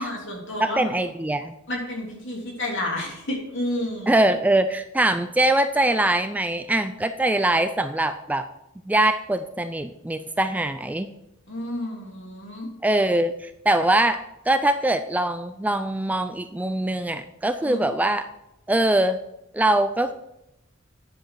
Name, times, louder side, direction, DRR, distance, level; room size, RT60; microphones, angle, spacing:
voice 1, 0.0-0.9 1.7-4.1 11.5-12.7 17.6-17.8, left 1 dB, 60° left, -1 dB, 3.1 m, -30 dB
voice 2, 0.6-1.6 4.1-8.5 8.9-11.1 12.8-18.3 18.7-19.2 19.5-20.1, right 1 dB, 5° right, 10 dB, 0.3 m, -22 dB
10.5 x 7.5 x 4.6 m, 0.85 s
head